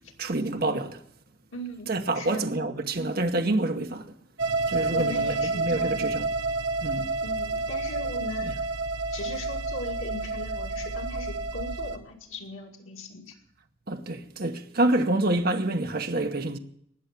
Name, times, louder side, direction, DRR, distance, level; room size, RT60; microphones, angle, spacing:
voice 1, 0.2-1.0 1.9-4.1 4.7-6.3 6.8-7.1 8.4-8.5 13.9-16.6, right 2 dB, 50° right, 0.9 m, -27 dB
voice 2, 1.5-2.4 4.9-6.0 7.2-8.5 9.1-13.3, left 2 dB, 85° left, 2.4 m, -39 dB
sound 1, 4.4-12.0, right 3 dB, 75° right, 1.1 m, -29 dB
19.5 x 7.0 x 8.2 m
head